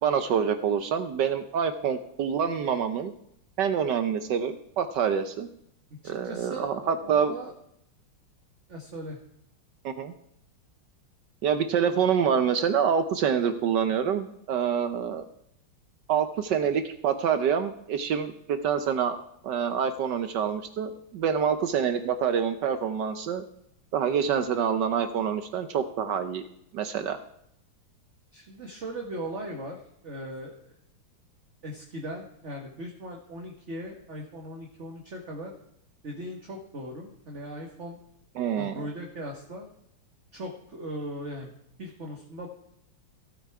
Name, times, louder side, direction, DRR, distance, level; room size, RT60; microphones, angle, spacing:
voice 1, 0.0-3.1 3.6-5.5 6.0-7.3 9.8-10.1 11.4-15.3 16.1-19.2 19.4-23.4 23.9-26.4 26.7-27.2 38.4-38.7, right 7 dB, 65° right, 10 dB, 1.1 m, -26 dB
voice 2, 6.0-6.7 7.0-7.5 8.7-9.2 28.3-30.7 31.6-35.5 36.0-38.0 38.5-39.7 40.3-41.5 41.8-42.5, right 1 dB, 35° right, 0 dB, 1.5 m, -38 dB
16.0 x 7.8 x 4.7 m, 0.74 s
omnidirectional pair, 2.4 m